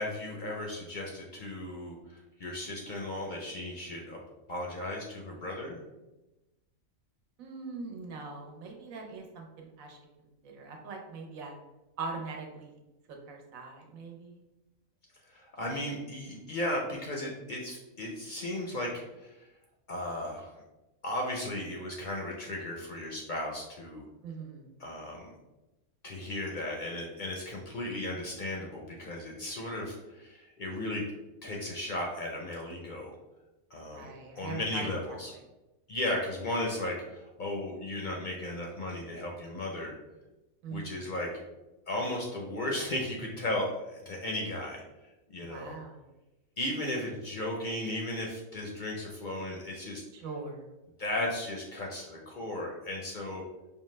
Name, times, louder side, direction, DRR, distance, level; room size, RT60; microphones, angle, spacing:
voice 1, 0.0-1.9 2.4-4.2 4.5-5.8 15.3-19.4 19.9-20.5 21.0-24.1 24.8-25.3 26.0-31.0 31.4-33.1 33.7-34.1 34.4-35.3 35.9-39.9 40.7-41.3 41.9-44.8 45.3-45.8 46.6-50.0 51.0-53.4, left 1 dB, 55° left, 0 dB, 0.5 m, -35 dB
voice 2, 7.4-10.0 10.4-11.6 12.0-12.8 13.1-14.4 24.2-24.7 33.9-34.9 40.6-41.0 45.4-46.1 50.1-50.7, right 4 dB, 75° right, 2 dB, 1.1 m, -42 dB
5.2 x 2.2 x 3.1 m, 1.0 s
omnidirectional pair, 1.5 m